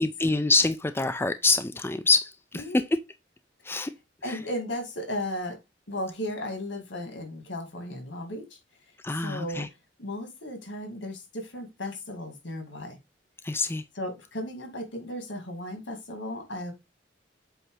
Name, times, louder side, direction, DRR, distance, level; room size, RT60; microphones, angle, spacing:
voice 1, 0.0-2.6 3.6-3.9 4.3-4.4 9.0-9.7 13.4-13.8, left 3 dB, 10° left, 0.4 m, -26 dB
voice 2, 4.2-5.6 5.9-8.6 9.1-9.7 10.0-13.0 13.9-16.7, left 1 dB, 80° left, 2.1 m, -35 dB
7.8 x 2.8 x 4.7 m
head